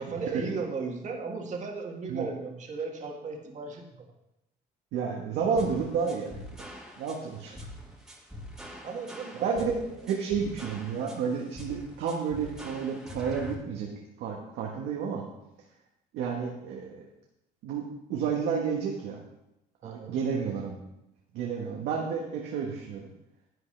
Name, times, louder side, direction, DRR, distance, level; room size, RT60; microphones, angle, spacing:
voice 1, 0.0-4.1 8.8-10.1 19.8-20.2, right 4 dB, 45° right, 1 dB, 1.9 m, -36 dB
voice 2, 4.9-6.4 7.0-7.5 9.4-9.7 10.1-13.9 14.2-15.3 16.1-17.0 17.6-19.2 19.8-20.8 21.3-23.1, right 6 dB, 85° right, -1 dB, 1.5 m, -31 dB
sound 1, 5.6-13.6, left 1 dB, 5° right, 2.1 m, -44 dB
11.0 x 9.6 x 3.4 m, 0.89 s
cardioid pair, 110°, 17 cm